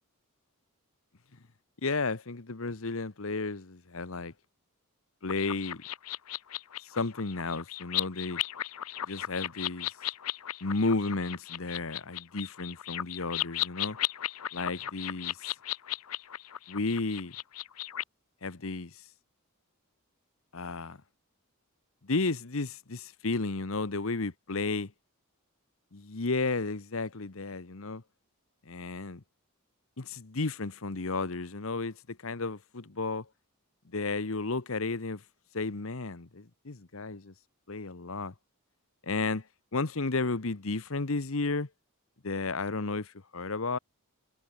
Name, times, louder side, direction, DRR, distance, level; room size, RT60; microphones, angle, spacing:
voice 1, 1.8-4.3 5.2-5.8 6.8-8.4 9.0-9.9 10.6-14.0 14.5-15.5 16.7-17.3 18.4-19.0 20.5-21.0 22.0-24.9 25.9-28.0 28.6-29.2 30.0-33.3 33.8-35.2 35.5-37.3 37.7-38.3 39.0-39.5 39.7-41.7 42.2-43.8, left 3 dB, 65° left, 1.1 m, -33 dB
sound 1, 5.3-18.0, left 13 dB, 85° left, 0.8 m, -36 dB
head